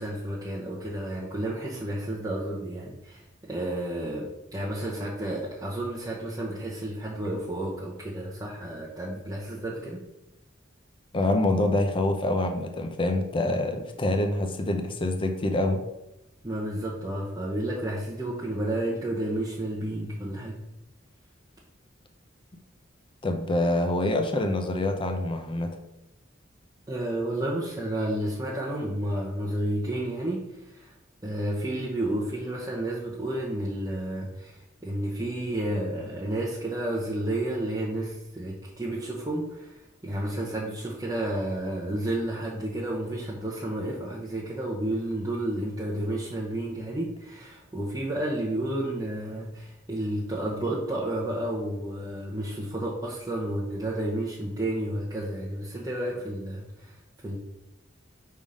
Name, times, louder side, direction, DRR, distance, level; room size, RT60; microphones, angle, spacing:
voice 1, 0.0-10.0 16.4-20.6 26.9-30.9 31.2-57.0 57.2-57.4, right 1 dB, 20° right, -6 dB, 0.8 m, -31 dB
voice 2, 11.1-15.8 23.2-25.8, left 1 dB, 25° left, 5 dB, 0.5 m, -26 dB
5.6 x 3.6 x 5.0 m, 0.90 s
head